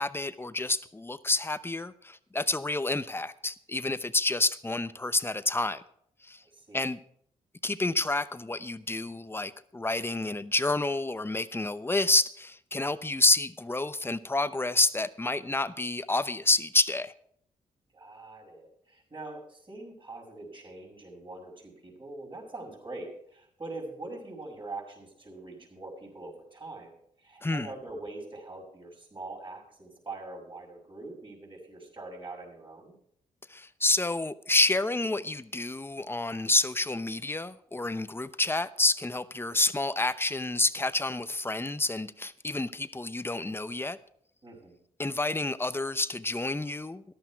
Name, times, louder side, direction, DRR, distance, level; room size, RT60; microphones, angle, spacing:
voice 1, 0.0-5.8 6.2-6.4 6.7-7.0 7.6-17.1 27.4-27.7 33.5-44.0 45.0-47.1, left 2 dB, 15° left, 13 dB, 0.8 m, -29 dB
voice 2, 6.5-6.8 17.9-26.9 27.2-32.9 44.4-44.8, right 2 dB, 35° right, -8 dB, 5.9 m, -43 dB
14.0 x 11.5 x 4.6 m, 0.66 s
supercardioid pair, 60°, 14 cm